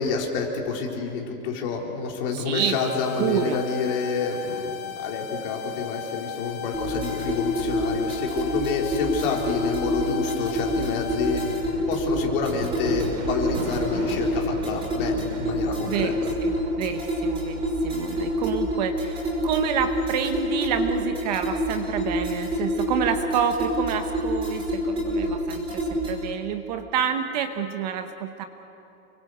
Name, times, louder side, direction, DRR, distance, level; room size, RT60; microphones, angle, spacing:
voice 1, 0.0-11.4 11.9-16.3, left 5 dB, 40° left, 0 dB, 4.1 m, -28 dB
voice 2, 2.3-2.8 3.2-3.6 15.9-28.4, right 8 dB, 30° right, 7 dB, 1.0 m, -28 dB
sound 1, 2.5-11.5, left 8 dB, 25° left, 1.5 m, -36 dB
sound 2, 6.7-26.3, equal, 10° right, 5.3 m, -27 dB
sound 3, 6.8-20.0, right 4 dB, 50° right, 3.4 m, -40 dB
29.5 x 23.5 x 8.1 m, 2.8 s
supercardioid pair, 175°, 42 cm